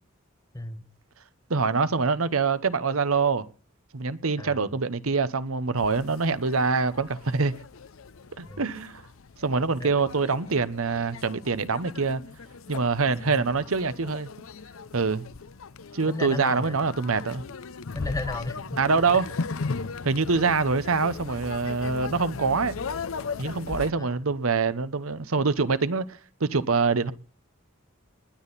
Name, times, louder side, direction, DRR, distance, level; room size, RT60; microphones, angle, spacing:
voice 1, 0.5-0.8 4.4-4.7 8.5-8.6 9.8-9.9 13.1-13.4 16.1-16.8 17.9-18.8 24.0-24.1, left 2 dB, 15° left, 1.1 m, -34 dB
voice 2, 1.5-3.4 3.9-7.5 8.4-9.0 9.4-12.2 12.7-14.3 14.9-15.2 15.9-17.4 18.8-19.3 20.0-22.8 23.4-26.0 26.4-27.1, right 4 dB, 90° right, 1.0 m, -25 dB
sound 1, 5.8-23.9, left 4 dB, 80° left, 0.7 m, -38 dB
20.5 x 9.9 x 4.1 m
head